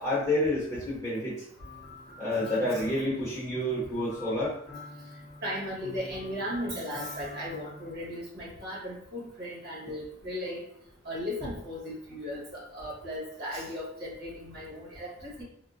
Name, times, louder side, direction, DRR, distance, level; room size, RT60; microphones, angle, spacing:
voice 1, 0.0-1.4 2.2-4.6, left 1 dB, 15° left, -7 dB, 0.7 m, -29 dB
sound 1, 1.6-8.0, left 3 dB, 50° left, 0.7 m, -46 dB
voice 2, 5.4-10.6 11.0-15.4, equal, 50° right, -5 dB, 1.2 m, -36 dB
3.5 x 2.1 x 2.5 m, 0.70 s
head